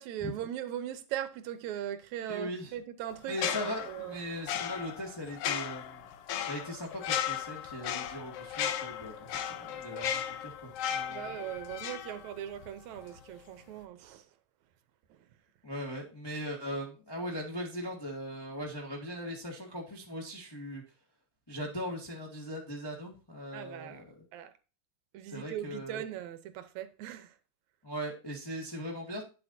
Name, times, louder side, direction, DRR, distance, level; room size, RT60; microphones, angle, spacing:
voice 1, 0.0-3.5 3.9-4.2 11.1-14.3 15.1-15.3 23.5-24.0 24.3-24.5 25.1-27.4, right 11 dB, 75° right, 2.0 m, -39 dB
voice 2, 2.2-2.7 3.3-6.1 6.5-11.3 15.6-20.8 21.5-24.1 25.3-26.0 27.8-29.2, equal, 10° left, 1.1 m, -39 dB
sound 1, 3.3-12.7 13.0-13.2, left 9 dB, 70° left, 1.5 m, -36 dB
9.5 x 7.7 x 2.7 m
omnidirectional pair, 3.6 m